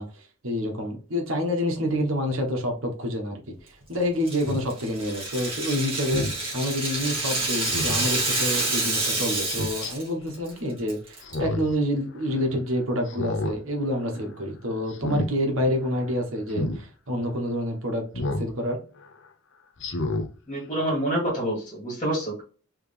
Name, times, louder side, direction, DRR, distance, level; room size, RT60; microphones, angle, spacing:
voice 1, 0.0-6.2 6.5-18.8, equal, 65° right, 2 dB, 1.3 m, -28 dB
Rattle (instrument), 4.3-10.1 10.3-10.5 10.9-11.3, right 2 dB, 25° right, 1.9 m, -28 dB
Speech synthesizer, 4.5-4.6 6.1-6.4 7.6-8.1 9.4-9.9 11.2-11.7 12.1-12.2 13.1-13.6 14.0-14.3 14.9-15.3 16.5-16.8 18.1-18.5 19.0-19.1 19.8-20.3 20.7-20.8, left 2 dB, 55° left, 0.7 m, -29 dB
voice 2, 20.5-22.4, right 1 dB, 20° left, -3 dB, 2.0 m, -27 dB
4.8 x 3.2 x 3.4 m, 0.38 s
head